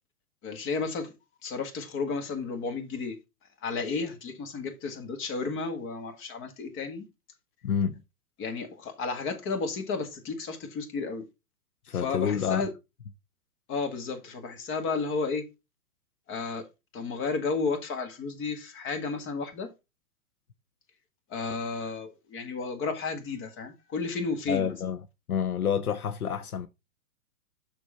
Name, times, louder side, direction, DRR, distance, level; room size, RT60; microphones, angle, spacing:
voice 1, 0.4-1.1 1.4-3.2 3.6-7.0 8.4-11.3 11.9-12.7 13.7-15.5 16.3-16.7 16.9-19.7 21.3-24.7, left 4 dB, 25° left, 1.6 m, -32 dB
voice 2, 7.6-8.0 11.8-12.6 24.5-25.0 25.3-26.7, left 7 dB, 80° left, 0.7 m, -28 dB
6.8 x 6.1 x 4.1 m
figure-of-eight pair, 110°, 43 cm